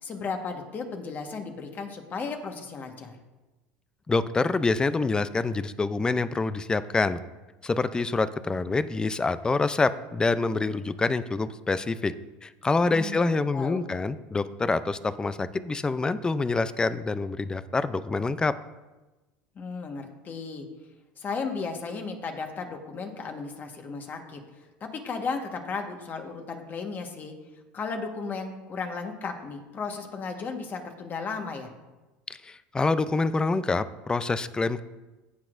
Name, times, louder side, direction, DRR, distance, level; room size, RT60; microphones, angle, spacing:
voice 1, 0.0-3.2 12.8-13.8 19.5-20.7 21.2-27.3 27.7-31.7, left 4 dB, 35° left, 4 dB, 1.4 m, -35 dB
voice 2, 4.1-7.2 7.6-12.1 12.4-18.5 32.3-34.8, left 3 dB, 15° left, 14 dB, 0.4 m, -26 dB
17.5 x 5.9 x 2.6 m, 1.1 s
supercardioid pair, 95°, 5 cm